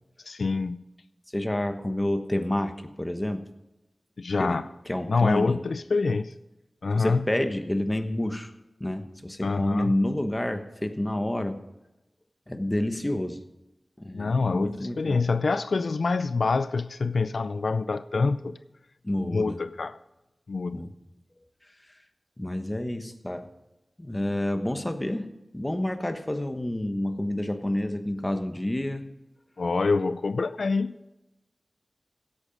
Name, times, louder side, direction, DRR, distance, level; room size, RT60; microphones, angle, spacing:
voice 1, 0.3-0.8 4.2-4.7 5.1-6.3 6.8-7.3 9.4-10.0 14.1-18.6 19.2-20.0 20.5-20.8 29.6-31.0, left 4 dB, 85° left, 13 dB, 0.4 m, -26 dB
voice 2, 1.3-3.4 4.4-4.6 4.9-5.6 6.9-8.5 8.8-11.6 12.5-13.4 14.0-15.2 19.0-19.5 20.7-20.9 22.4-23.5 24.0-29.0, left 1 dB, 15° left, 8 dB, 1.2 m, -29 dB
16.0 x 8.7 x 5.3 m, 0.96 s
wide cardioid pair, 75°, 0 cm